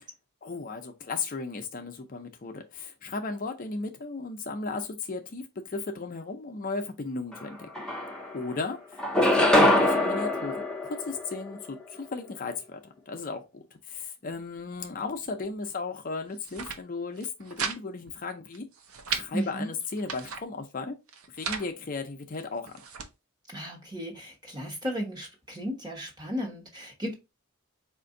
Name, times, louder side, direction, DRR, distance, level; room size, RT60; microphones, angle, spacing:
voice 1, 0.4-7.7 8.3-12.8 13.1-18.7 19.1-21.0 21.3-22.7, left 4 dB, 40° left, 0.5 m, -35 dB
sound 1, 7.3-7.4 7.7-8.5 9.0-11.6, left 1 dB, 5° left, 0.7 m, -23 dB
sound 2, 16.3-16.8 17.1-17.8 18.1-18.2 18.5-19.3 19.8-20.4 21.1-21.7 22.3-23.1, right 6 dB, 85° right, 0.7 m, -35 dB
voice 2, 19.3-19.7 23.5-27.1, equal, 20° right, 1.2 m, -34 dB
4.3 x 2.5 x 3.7 m
head